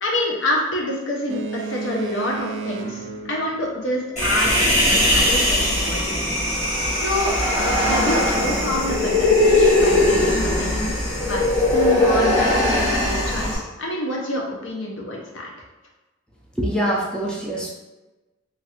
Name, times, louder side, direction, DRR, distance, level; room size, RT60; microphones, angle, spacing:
voice 1, 0.0-4.5 4.9-6.2 6.9-7.3 7.8-10.9 11.2-15.5, left 1 dB, 70° left, -1 dB, 0.7 m, -27 dB
Boat Water vehicle, 1.3-4.4, right 5 dB, 65° right, 0.4 m, -33 dB
Human voice, 4.2-13.6, left 1 dB, 40° left, 1.5 m, -19 dB
voice 2, 16.6-17.7, right 1 dB, 5° left, -4 dB, 0.4 m, -24 dB
3.1 x 2.6 x 2.8 m, 1.1 s
head